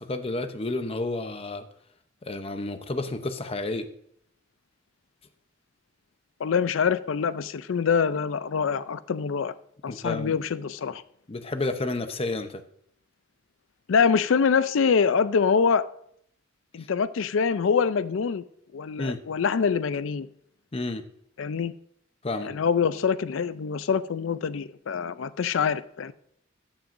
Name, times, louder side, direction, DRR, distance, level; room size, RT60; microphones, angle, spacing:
voice 1, 0.0-1.7 2.2-3.9 9.9-10.4 11.3-12.6 16.8-16.9 19.0-19.2 20.7-21.0 22.2-22.5, left 2 dB, 30° left, 9 dB, 0.7 m, -31 dB
voice 2, 6.4-9.5 9.8-11.0 13.9-15.9 16.7-18.4 18.7-20.3 21.4-21.7 22.4-26.1, left 6 dB, 80° left, 15 dB, 0.4 m, -25 dB
12.5 x 8.9 x 2.6 m, 0.69 s
head